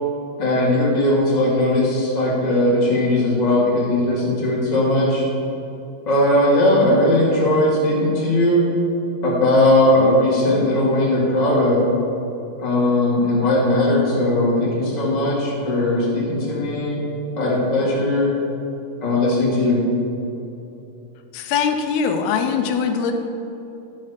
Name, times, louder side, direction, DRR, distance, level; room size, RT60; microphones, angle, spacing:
voice 1, 0.4-5.2 6.0-8.6 9.2-11.8 12.6-17.0 17.4-18.3 19.0-19.8, left 1 dB, 20° left, -6 dB, 1.2 m, -18 dB
voice 2, 21.3-23.1, left 6 dB, 85° left, 5 dB, 2.7 m, -21 dB
11.5 x 5.0 x 5.7 m, 3.0 s
omnidirectional pair, 4.4 m